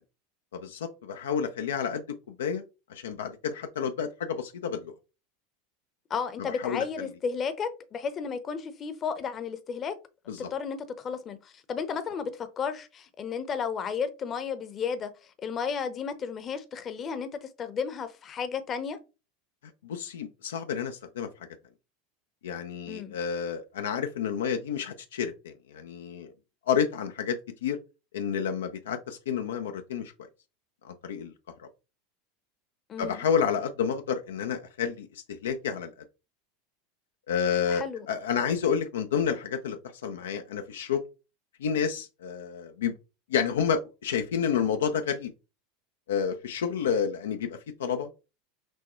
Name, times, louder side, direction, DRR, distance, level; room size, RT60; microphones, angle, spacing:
voice 1, 0.5-2.6 2.9-4.9 6.5-6.8 10.3-10.5 19.8-21.3 22.4-26.3 26.7-27.8 28.1-30.1 30.8-31.3 31.6-31.7 33.0-35.9 37.3-41.0 41.6-42.9 43.3-45.3 46.1-48.1, left 7 dB, 80° left, 0.5 m, -30 dB
voice 2, 6.1-9.9 10.4-19.0 22.9-23.1 32.9-33.3 37.7-38.1, left 6 dB, 35° left, 0.8 m, -33 dB
6.1 x 2.2 x 3.0 m
hypercardioid pair, 90°, 0 cm